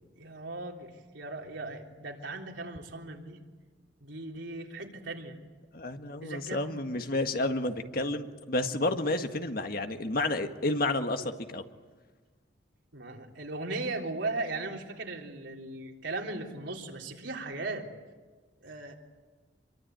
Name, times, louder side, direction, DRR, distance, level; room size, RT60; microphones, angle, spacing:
voice 1, 0.2-3.4 4.0-5.4 6.2-6.7 12.9-17.9 18.6-18.9, right 2 dB, 80° right, 1 dB, 3.6 m, -37 dB
voice 2, 5.7-11.6, left 2 dB, 50° left, 6 dB, 1.8 m, -30 dB
27.5 x 23.5 x 9.4 m, 1.4 s
head